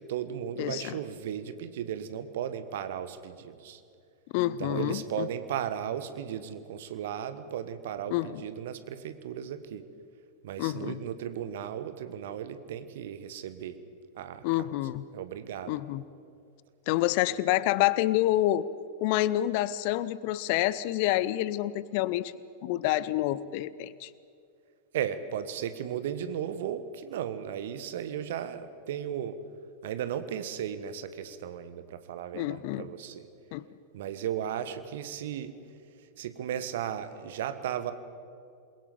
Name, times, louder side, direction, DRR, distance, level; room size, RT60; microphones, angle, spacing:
voice 1, 0.0-3.8 4.6-9.9 10.4-13.8 14.1-15.8 24.9-29.4 29.8-33.3 33.9-35.6 36.2-37.9, right 9 dB, 55° right, 11 dB, 1.4 m, -35 dB
voice 2, 0.6-1.0 4.3-5.3 8.1-8.4 10.6-11.0 14.4-15.0 15.7-16.0 16.9-18.6 19.0-22.3 22.6-24.1 32.3-32.9 33.5-33.6, left 15 dB, 45° left, 18 dB, 0.7 m, -28 dB
28.0 x 21.5 x 5.3 m, 2.4 s
figure-of-eight pair, 90°, 0 cm